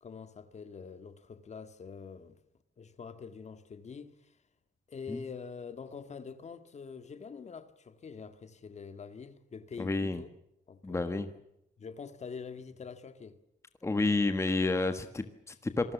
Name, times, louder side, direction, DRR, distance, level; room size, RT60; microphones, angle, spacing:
voice 1, 0.0-2.4 2.8-4.4 4.9-10.3 10.7-11.3 11.8-13.4, left 5 dB, 40° left, 1.8 m, -45 dB
voice 2, 9.8-10.2 10.8-11.3 13.8-15.9, left 3 dB, 15° left, 1.4 m, -30 dB
27.0 x 20.0 x 7.2 m
wide cardioid pair, 150°, 17 cm